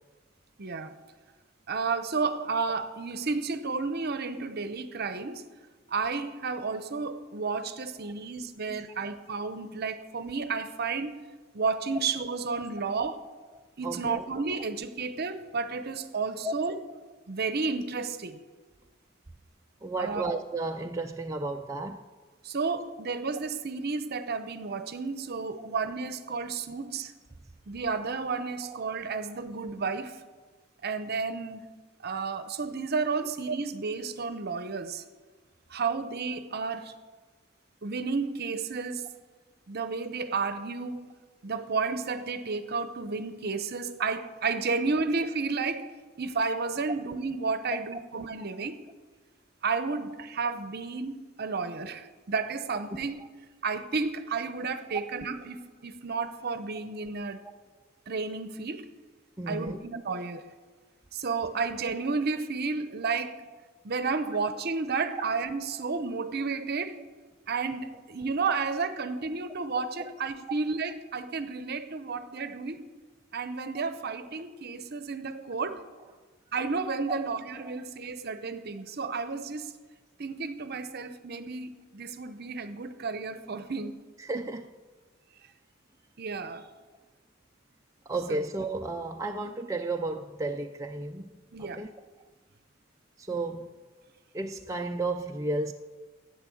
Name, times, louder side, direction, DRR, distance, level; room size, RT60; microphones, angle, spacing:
voice 1, 0.6-1.0 1.7-5.5 5.9-11.2 11.5-13.2 13.8-16.8 17.3-18.4 20.0-20.2 22.4-27.1 27.7-30.2 30.8-31.7 32.0-35.0 35.7-36.9 37.8-39.2 39.7-41.1 41.4-45.9 46.2-48.8 49.6-53.2 53.6-57.4 58.1-58.9 59.5-60.5 61.1-63.5 63.8-67.0 67.5-72.8 73.3-75.9 76.5-79.7 80.2-84.0 86.2-86.7 88.3-88.4 91.5-91.8, right 4 dB, 50° right, 0.8 m, -32 dB
voice 2, 13.5-14.3 16.4-16.5 19.8-22.0 25.6-25.7 28.6-28.8 33.2-33.3 59.4-59.8 70.0-70.1 73.8-73.9 77.1-77.2 77.6-77.7 84.2-84.7 88.1-91.9 93.2-93.7 94.3-95.7, right 2 dB, 15° right, 0.4 m, -33 dB
11.0 x 8.7 x 7.7 m
head